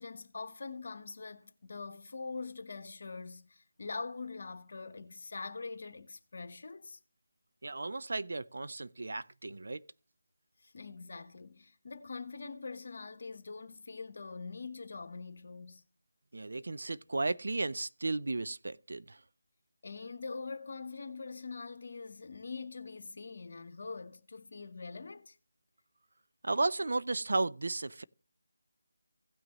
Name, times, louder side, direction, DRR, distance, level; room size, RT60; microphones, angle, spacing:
voice 1, 0.0-7.0 10.6-15.8 19.8-25.4, left 4 dB, 55° left, 1.1 m, -43 dB
voice 2, 7.6-9.8 16.3-19.2 26.4-28.0, right 2 dB, 65° right, 0.5 m, -34 dB
16.5 x 6.1 x 3.0 m
figure-of-eight pair, 165°, 0 cm